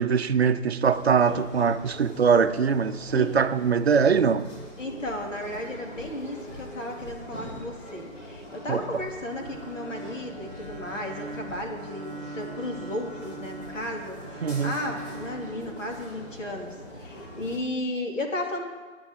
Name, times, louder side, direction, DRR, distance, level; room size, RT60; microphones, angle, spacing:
voice 1, 0.0-4.5 8.7-8.8 14.4-14.7, right 6 dB, 50° right, 0.6 m, -22 dB
sound 1, 0.8-17.6, equal, 50° left, 4.1 m, -43 dB
voice 2, 4.8-18.7, left 1 dB, 65° left, 2.7 m, -34 dB
Bowed string instrument, 9.2-16.3, right 4 dB, 10° right, 2.1 m, -42 dB
18.5 x 9.6 x 3.7 m
figure-of-eight pair, 155°, 41 cm